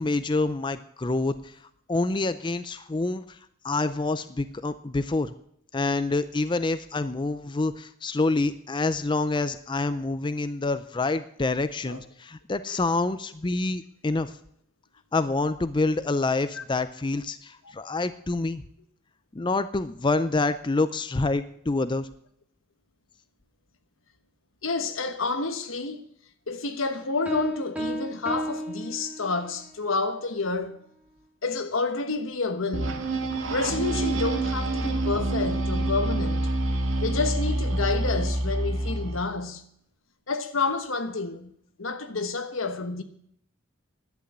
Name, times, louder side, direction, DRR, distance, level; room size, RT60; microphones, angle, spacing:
voice 1, 0.0-1.3 1.9-3.2 3.6-5.3 5.7-14.3 15.1-18.6 19.3-22.1, left 3 dB, 25° left, 0.5 m, -27 dB
voice 2, 24.6-26.0 26.5-30.8 31.4-33.1 33.5-36.5 37.0-39.6 40.3-41.5 41.8-43.0, left 3 dB, 85° left, 1.3 m, -29 dB
sound 1, 27.3-29.6, right 1 dB, 5° right, 1.5 m, -33 dB
sound 2, 32.7-39.3, right 2 dB, 90° right, 1.9 m, -27 dB
11.5 x 8.4 x 8.6 m
head